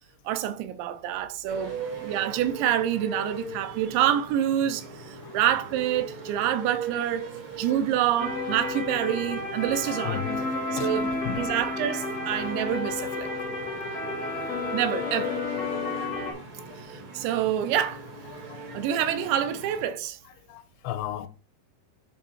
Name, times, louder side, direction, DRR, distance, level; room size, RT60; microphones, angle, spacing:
voice 1, 0.3-7.3 7.6-10.2 10.7-13.3 14.7-15.4 16.8-18.0 18.7-20.2, right 11 dB, 80° right, 2.9 m, -27 dB
sound 1, 1.5-19.8, right 3 dB, 65° right, 1.2 m, -40 dB
sound 2, 8.2-16.3, left 3 dB, 60° left, 0.9 m, -31 dB
voice 2, 9.9-10.4 10.8-11.5 18.8-18.9 20.5-21.3, left 10 dB, 80° left, 2.8 m, -34 dB
10.5 x 3.5 x 4.4 m
omnidirectional pair, 5.2 m